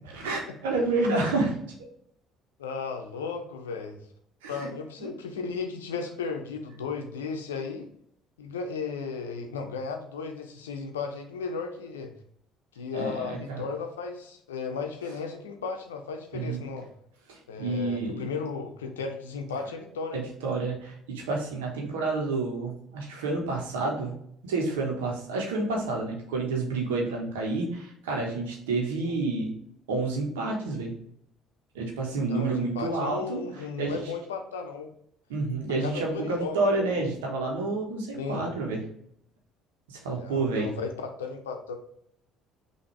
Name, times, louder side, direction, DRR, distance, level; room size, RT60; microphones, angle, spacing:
voice 1, 0.1-1.6 4.4-4.7 5.0-5.1 12.9-13.6 16.3-16.6 17.3-18.2 20.1-24.1 24.4-29.5 29.9-30.9 31.7-34.0 35.3-38.8 39.9-40.7, right 3 dB, 80° right, 0 dB, 1.2 m, -29 dB
voice 2, 2.6-4.0 4.5-7.9 8.4-12.1 12.7-16.9 17.5-20.3 29.0-29.1 32.3-34.9 35.8-37.1 38.1-38.5 40.1-41.8, left 5 dB, 85° left, 4 dB, 0.7 m, -35 dB
5.9 x 2.8 x 3.2 m, 0.70 s
hypercardioid pair, 55°, 0 cm